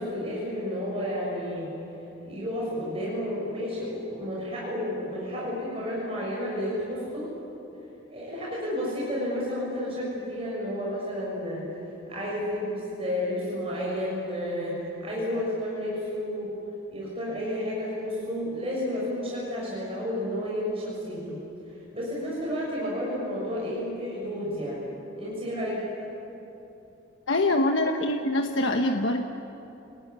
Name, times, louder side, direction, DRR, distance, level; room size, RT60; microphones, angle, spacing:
voice 1, 0.0-1.7 2.2-7.3 8.1-11.7 12.1-16.5 16.9-21.4 21.9-24.8 25.2-25.8, left 1 dB, 30° right, -5 dB, 6.7 m, -31 dB
voice 2, 27.3-29.2, left 1 dB, 70° left, 3 dB, 1.2 m, -24 dB
29.0 x 20.0 x 9.6 m, 3.0 s
head